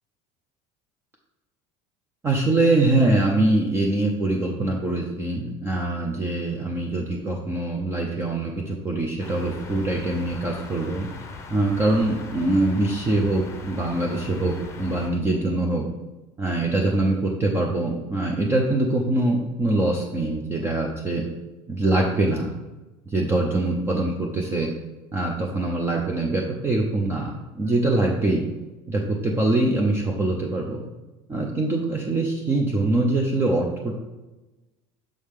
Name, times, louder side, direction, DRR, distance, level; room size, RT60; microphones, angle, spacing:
voice 1, 2.2-11.1 11.5-15.9 16.4-21.2 21.7-22.5 23.1-24.7 25.1-28.5 28.9-30.8 31.3-33.9, right 2 dB, 15° right, -1 dB, 0.6 m, -23 dB
sound 1, 9.2-15.1, left 5 dB, 20° left, 0.7 m, -40 dB
6.5 x 4.9 x 3.6 m, 1.1 s
cardioid pair, 155°, 14 cm